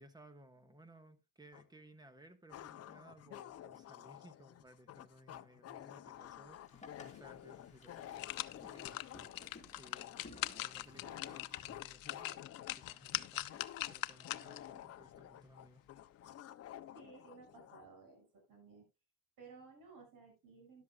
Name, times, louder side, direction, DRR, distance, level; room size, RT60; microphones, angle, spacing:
voice 1, 0.0-15.9, right 1 dB, 10° right, 1.4 m, -60 dB
sound 1, 1.5-1.6 2.5-17.9, left 12 dB, 45° left, 0.6 m, -52 dB
Boat Water vehicle, 6.5-11.8, left 3 dB, 20° left, 2.8 m, -58 dB
sound 2, 7.3-7.4 7.8-14.7 15.1-15.2, left 17 dB, 80° left, 0.7 m, -43 dB
voice 2, 16.9-18.9 19.4-20.8, right 4 dB, 70° right, 6.4 m, -57 dB
13.0 x 11.5 x 2.4 m
cardioid pair, 140°, 34 cm